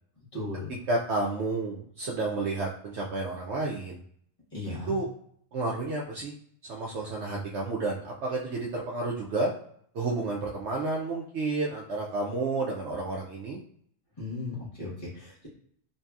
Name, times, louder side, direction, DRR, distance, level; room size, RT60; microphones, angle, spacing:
voice 1, 0.3-0.8 4.5-5.0 14.2-15.5, left 2 dB, 25° left, -7 dB, 1.2 m, -36 dB
voice 2, 0.9-4.0 4.9-5.1 5.5-6.3 6.7-9.5 9.9-13.6, right 3 dB, 65° right, -3 dB, 0.7 m, -31 dB
2.8 x 2.7 x 2.3 m, 0.65 s
omnidirectional pair, 1.4 m